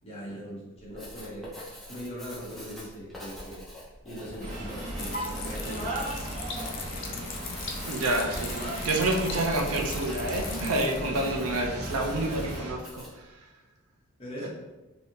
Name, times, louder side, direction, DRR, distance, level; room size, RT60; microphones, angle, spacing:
voice 1, 0.0-1.5 1.9-3.6 4.0-6.3 14.2-14.5, equal, 25° left, -6 dB, 1.0 m, -40 dB
Writing, 0.8-13.2, left 1 dB, ahead, 0.5 m, -44 dB
sound 1, 4.4-12.7, right 1 dB, 35° right, 1.1 m, -36 dB
sound 2, 5.0-11.0, left 5 dB, 60° left, 0.4 m, -40 dB
voice 2, 7.8-13.4 14.4-14.5, right 2 dB, 85° right, 2 dB, 0.5 m, -29 dB
3.2 x 2.7 x 2.8 m, 1.1 s
head